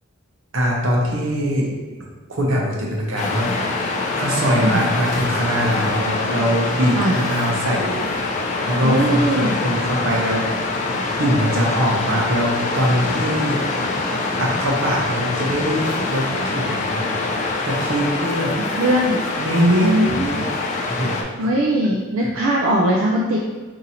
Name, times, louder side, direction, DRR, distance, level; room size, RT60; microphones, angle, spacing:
voice 1, 0.5-1.7 2.3-3.5 4.1-8.3 8.7-10.7 11.2-13.6 14.4-17.1 17.6-18.5 19.4-20.0 20.3-20.5 20.9-21.5 22.2-22.3, equal, 65° right, -2 dB, 0.8 m, -22 dB
Waves surf, 3.2-21.2, left 3 dB, 35° left, 0.3 m, -24 dB
voice 2, 8.8-9.5 18.6-19.2 19.8-20.5 21.4-23.4, right 1 dB, 85° right, -2 dB, 0.4 m, -20 dB
2.8 x 2.6 x 4.1 m, 1.3 s
head